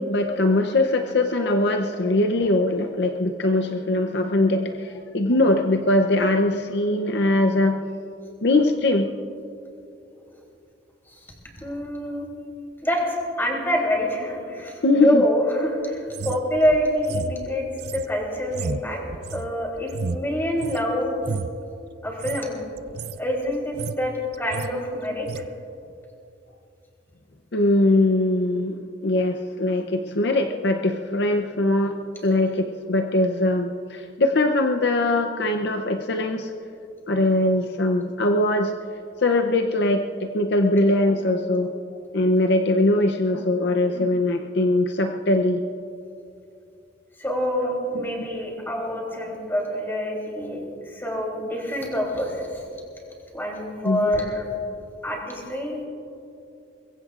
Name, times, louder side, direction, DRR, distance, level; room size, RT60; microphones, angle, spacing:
voice 1, 0.0-7.8 8.4-9.1 14.8-15.2 27.5-28.8 29.0-32.0 32.2-36.5 37.1-38.7 39.2-41.7 42.1-45.6 47.6-48.3 53.8-54.1, left 2 dB, 60° left, 5 dB, 0.6 m, -21 dB
voice 2, 11.6-12.3 12.8-17.7 17.9-19.0 19.3-21.2 22.0-22.6 23.2-25.2 47.2-52.6 53.3-54.5 55.0-55.8, equal, 10° left, -1 dB, 3.2 m, -26 dB
sound 1, 16.1-20.9 21.2-21.6 22.1-22.4 22.8-23.2 23.5-24.1 24.3-24.7 25.2-25.5, right 5 dB, 55° right, 0.4 m, -32 dB
23.5 x 22.0 x 2.5 m, 2.7 s
head